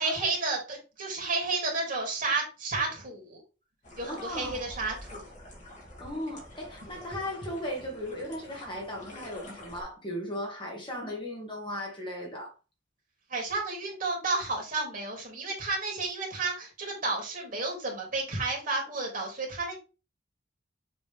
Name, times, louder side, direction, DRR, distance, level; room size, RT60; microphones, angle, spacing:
voice 1, 0.0-3.4 4.0-5.3 13.3-19.7, right 3 dB, 50° right, 2.8 m, -31 dB
sound 1, 3.8-9.8, left 1 dB, 40° left, 2.9 m, -47 dB
voice 2, 4.1-4.7 6.0-12.5, left 1 dB, 25° left, 2.1 m, -37 dB
7.2 x 3.9 x 3.5 m
head